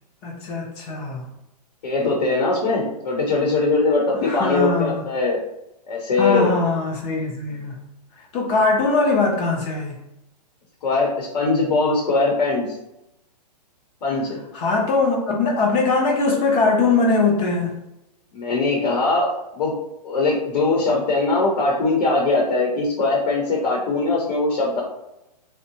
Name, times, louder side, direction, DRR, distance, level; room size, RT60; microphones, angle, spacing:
voice 1, 0.2-1.3 4.2-5.0 6.2-7.8 8.3-10.0 14.5-17.7, left 3 dB, 25° left, 0 dB, 0.4 m, -21 dB
voice 2, 1.8-5.4 5.9-6.6 10.8-12.7 14.0-14.4 18.3-19.8 20.0-24.8, left 3 dB, 75° left, -2 dB, 0.8 m, -21 dB
2.6 x 2.1 x 2.7 m, 0.88 s
hypercardioid pair, 140°, 21 cm